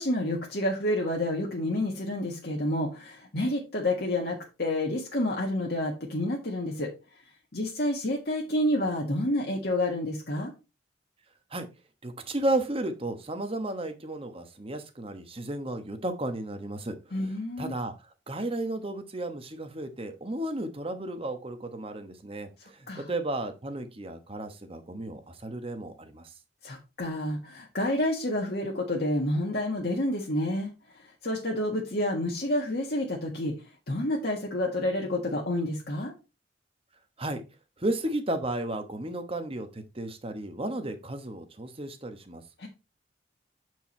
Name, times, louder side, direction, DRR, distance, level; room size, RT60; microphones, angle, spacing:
voice 1, 0.0-6.9 7.5-10.5 17.1-17.7 22.9-23.1 26.6-30.7 31.2-33.5 33.9-36.1 42.6-42.7, left 1 dB, 55° left, -1 dB, 1.6 m, -29 dB
voice 2, 12.0-17.9 18.3-26.3 37.2-37.4 37.8-42.4, right 1 dB, 30° right, 8 dB, 1.1 m, -33 dB
7.7 x 4.7 x 4.3 m, 0.28 s
head